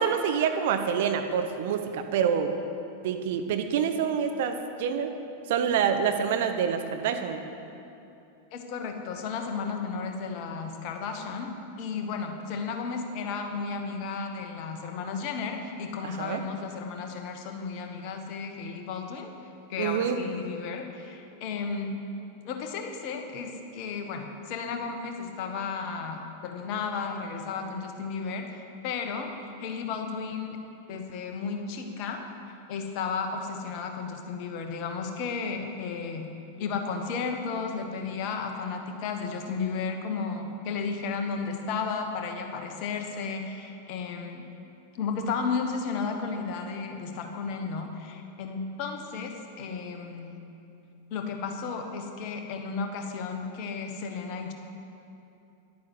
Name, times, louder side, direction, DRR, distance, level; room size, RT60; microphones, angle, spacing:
voice 1, 0.0-2.5 3.0-5.1 5.5-7.4 16.2-16.4 19.8-20.2, right 7 dB, 55° right, 7 dB, 0.8 m, -26 dB
voice 2, 8.5-11.5 11.8-19.3 19.7-22.0 22.4-30.6 30.9-32.2 32.7-36.3 36.6-44.4 44.9-50.4 51.1-54.5, left 5 dB, 45° left, 4 dB, 1.2 m, -33 dB
10.5 x 9.2 x 6.1 m, 2.8 s
figure-of-eight pair, 90°, 0 cm